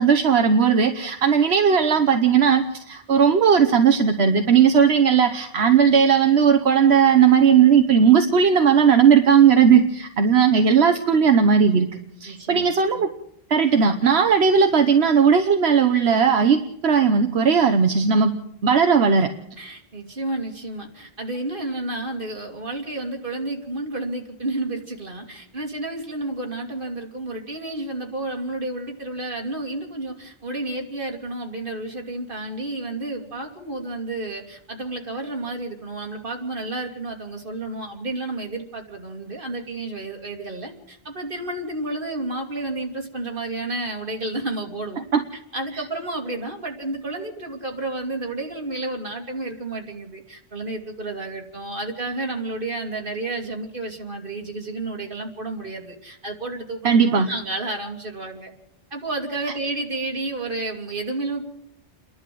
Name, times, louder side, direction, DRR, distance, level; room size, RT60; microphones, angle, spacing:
voice 1, 0.0-11.9 12.2-13.1 13.5-18.3 18.6-19.3 45.1-45.2 56.8-57.3, right 6 dB, 80° right, 5 dB, 1.3 m, -17 dB
voice 2, 12.3-12.7 19.6-45.0 45.5-58.5 58.9-61.4, right 2 dB, 55° right, 2 dB, 2.9 m, -31 dB
29.5 x 11.5 x 7.7 m, 0.76 s
omnidirectional pair, 1.1 m